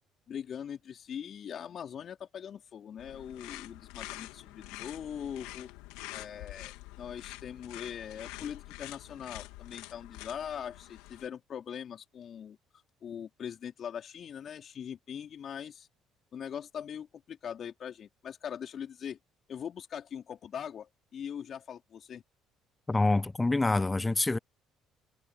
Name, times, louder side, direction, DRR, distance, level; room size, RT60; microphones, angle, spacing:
voice 1, 0.3-5.7 6.1-12.6 13.0-15.9 16.3-19.2 19.5-22.2, left 8 dB, 50° left, 4.6 m, -41 dB
sound 1, 3.0-11.3, left 20 dB, 80° left, 2.6 m, -46 dB
voice 2, 22.9-24.4, left 2 dB, 20° left, 0.3 m, -26 dB
supercardioid pair, 70°, 0 cm